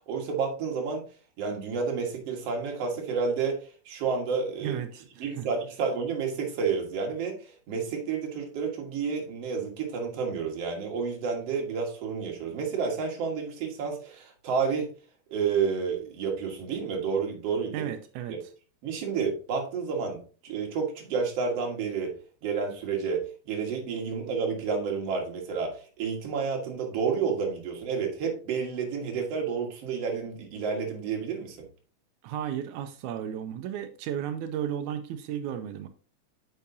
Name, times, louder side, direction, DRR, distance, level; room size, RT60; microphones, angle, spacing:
voice 1, 0.1-1.0 1.4-4.8 5.2-14.9 15.3-17.9 18.3-18.4 18.8-22.1 22.4-31.6, right 5 dB, 60° right, 2.5 m, -30 dB
voice 2, 4.6-5.5 17.7-18.4 32.2-35.9, right 9 dB, 90° right, 2.0 m, -34 dB
8.3 x 5.7 x 2.7 m
omnidirectional pair, 3.4 m